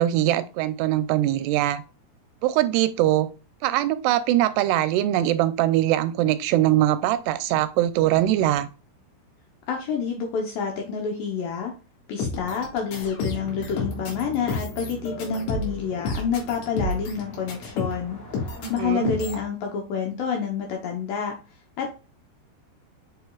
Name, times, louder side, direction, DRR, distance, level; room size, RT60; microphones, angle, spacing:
voice 1, 0.0-1.8 2.4-3.3 3.6-8.7 18.6-19.1, right 13 dB, 85° right, 11 dB, 2.6 m, -22 dB
voice 2, 9.7-11.7 12.1-18.2 18.7-21.4 21.8-21.9, left 6 dB, 75° left, 2 dB, 2.1 m, -28 dB
sound 1, 12.2-18.1 18.3-18.8 19.1-19.5, left 3 dB, 90° left, 4.0 m, -30 dB
sound 2, 13.2-19.5, right 1 dB, 35° left, 1.7 m, -42 dB
7.7 x 5.1 x 2.4 m, 0.32 s
omnidirectional pair, 4.9 m